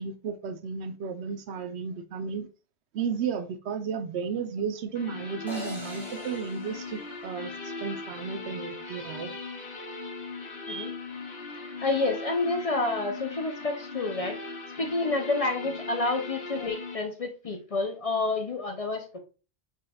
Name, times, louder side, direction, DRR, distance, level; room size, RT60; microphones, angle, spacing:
voice 1, 0.0-2.5 2.9-9.3, right 6 dB, 85° right, 0.9 m, -33 dB
sound 1, 4.9-16.9, left 3 dB, 60° left, 1.0 m, -39 dB
sound 2, 5.5-7.8, left 1 dB, ahead, 2.2 m, -43 dB
voice 2, 11.8-14.4 14.8-19.2, left 3 dB, 45° left, 0.6 m, -29 dB
4.9 x 4.1 x 2.2 m
omnidirectional pair, 1.1 m